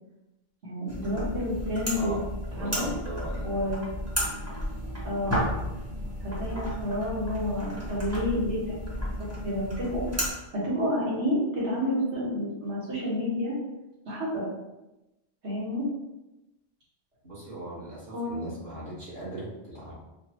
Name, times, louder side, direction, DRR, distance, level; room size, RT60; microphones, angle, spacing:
voice 1, 0.6-2.2 2.5-2.9 3.4-3.9 5.0-5.5 6.2-8.9 9.4-10.1 10.5-13.5 14.1-14.5 15.4-15.9 18.1-18.3, left 1 dB, 65° right, -7 dB, 1.8 m, -29 dB
sound 1, 0.9-10.3, equal, 15° right, 0.8 m, -33 dB
voice 2, 1.9-2.2 2.5-3.5 17.2-19.9, right 2 dB, 45° right, -8 dB, 1.6 m, -38 dB
5.1 x 2.3 x 2.9 m, 0.98 s
omnidirectional pair, 1.3 m